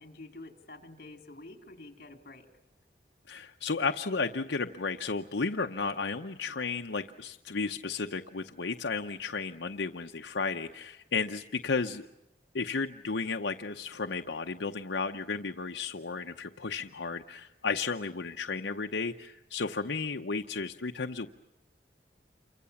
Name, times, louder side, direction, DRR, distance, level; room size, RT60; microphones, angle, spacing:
voice 1, 0.0-2.5, left 2 dB, 55° left, 6 dB, 3.6 m, -48 dB
voice 2, 3.3-12.0 12.5-21.3, left 4 dB, 85° left, 5 dB, 0.9 m, -33 dB
28.5 x 24.5 x 7.1 m, 0.91 s
head